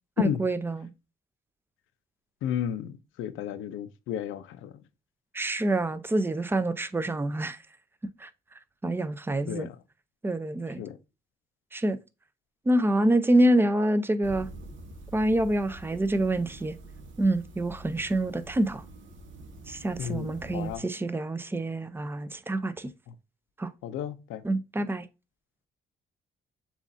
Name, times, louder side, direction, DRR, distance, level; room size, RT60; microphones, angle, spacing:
voice 1, 0.2-0.9 5.3-7.6 8.2-8.3 8.8-9.7 10.2-10.8 11.7-12.0 12.7-14.5 15.1-16.8 17.2-18.8 19.7-22.9 23.6-23.7 24.4-25.1, right 1 dB, 10° right, 0.4 m, -26 dB
voice 2, 2.4-4.8 9.5-9.8 10.8-11.0 20.0-20.9 23.1-23.2 23.8-24.4, left 10 dB, 85° left, 0.5 m, -33 dB
sound 1, 14.2-20.8, right 2 dB, 70° right, 0.9 m, -45 dB
7.0 x 2.5 x 2.5 m
cardioid pair, 90°, 20 cm